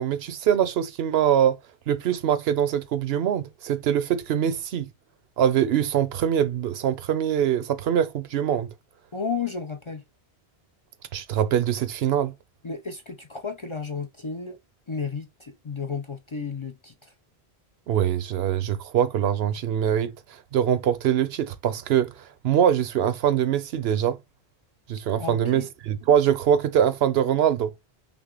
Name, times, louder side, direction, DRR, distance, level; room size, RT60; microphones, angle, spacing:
voice 1, 0.0-1.6 1.9-4.9 5.4-8.7 11.1-12.3 17.9-20.1 20.5-24.2 24.9-27.7, right 9 dB, 75° right, 0.8 m, -23 dB
voice 2, 9.1-10.0 12.6-14.6 14.9-16.9 25.2-25.7, left 5 dB, 35° left, 0.5 m, -32 dB
6.0 x 2.1 x 3.7 m
omnidirectional pair, 1.1 m